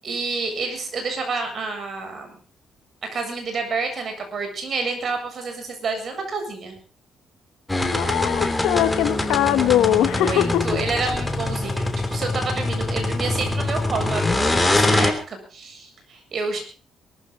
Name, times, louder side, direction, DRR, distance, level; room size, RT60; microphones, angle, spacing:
voice 1, 0.0-2.3 3.1-6.7 10.1-16.6, right 4 dB, 50° right, 5 dB, 7.5 m, -29 dB
sound 1, 7.7-15.1, left 2 dB, 15° left, 3.1 m, -23 dB
voice 2, 7.9-10.6, left 12 dB, 90° left, 10 dB, 1.8 m, -21 dB
22.5 x 14.0 x 4.0 m, 0.39 s
cardioid pair, 90°, 0 cm